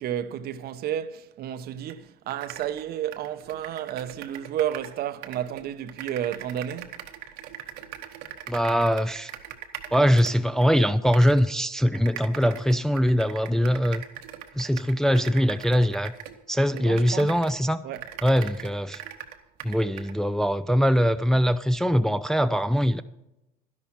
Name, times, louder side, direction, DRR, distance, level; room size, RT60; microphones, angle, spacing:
voice 1, 0.0-7.0 16.7-17.4 17.8-18.0, right 10 dB, 55° right, 0.8 m, -32 dB
sound 1, 1.9-2.0 2.3-5.0 5.2-10.7 11.1-11.5 11.9-17.6 17.9-20.2, right 11 dB, 75° right, 1.2 m, -41 dB
voice 2, 8.5-9.3 9.9-14.0 14.5-16.1 16.5-17.8 18.2-19.0 19.6-23.0, equal, 5° left, 0.4 m, -22 dB
12.0 x 11.0 x 4.3 m
supercardioid pair, 85°, 19 cm